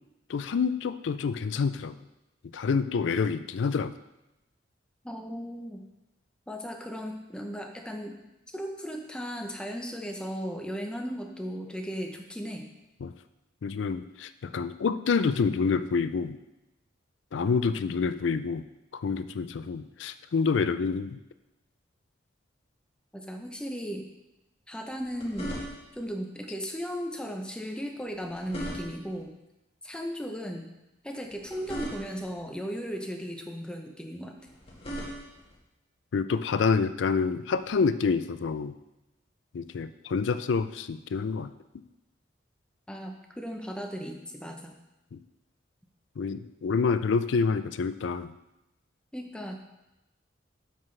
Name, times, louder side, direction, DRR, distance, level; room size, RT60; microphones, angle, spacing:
voice 1, 0.3-2.0 2.5-3.9 13.0-13.1 13.6-16.4 17.3-18.7 19.0-21.2 36.1-38.7 39.5-41.5 45.1-45.2 46.2-48.3, left 5 dB, 75° left, 12 dB, 0.4 m, -27 dB
voice 2, 5.0-5.8 6.5-8.2 8.5-12.7 23.1-24.1 24.7-25.6 25.9-29.3 29.8-30.7 31.0-34.3 42.9-44.8 49.1-49.6, equal, 5° left, 2 dB, 0.7 m, -36 dB
sound 1, 24.9-26.1 28.1-29.2 31.2-32.4 34.4-35.6 37.5-37.7, equal, 30° left, 1.8 m, -39 dB
9.0 x 5.8 x 3.3 m, 0.95 s
head